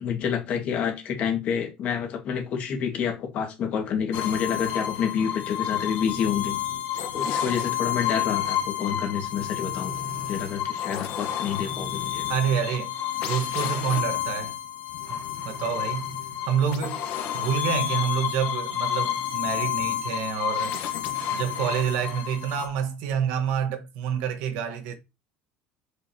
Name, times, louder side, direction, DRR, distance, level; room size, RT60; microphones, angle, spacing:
voice 1, 0.0-6.6 7.1-9.9 10.3-12.3, left 7 dB, 40° left, 1.8 m, -28 dB
sound 1, 4.1-22.7, left 10 dB, 60° left, 1.2 m, -30 dB
voice 2, 12.3-12.9 13.2-14.6 15.1-16.1 16.4-17.0 17.3-20.7 21.3-25.0, right 8 dB, 75° right, 1.3 m, -28 dB
6.8 x 5.4 x 2.9 m
cardioid pair, 170°, 3 cm